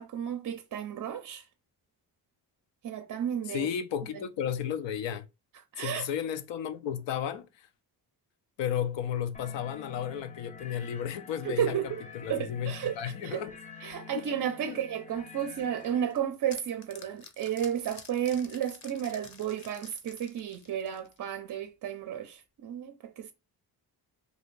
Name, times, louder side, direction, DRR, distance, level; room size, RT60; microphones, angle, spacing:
voice 1, 0.0-1.5 2.8-3.7 5.7-6.1 11.4-12.0 12.3-13.4 13.8-23.3, right 9 dB, 50° right, 0.4 m, -33 dB
voice 2, 3.5-5.3 5.8-7.7 8.6-11.8 12.1-13.5 14.1-14.2 14.7-14.8, left 9 dB, 85° left, 0.5 m, -33 dB
sound 1, 9.3-16.0, left 5 dB, 20° left, 0.4 m, -48 dB
sound 2, 15.8-21.3, left 5 dB, 45° left, 0.7 m, -50 dB
2.7 x 2.5 x 3.1 m
cardioid pair, 80°, 42 cm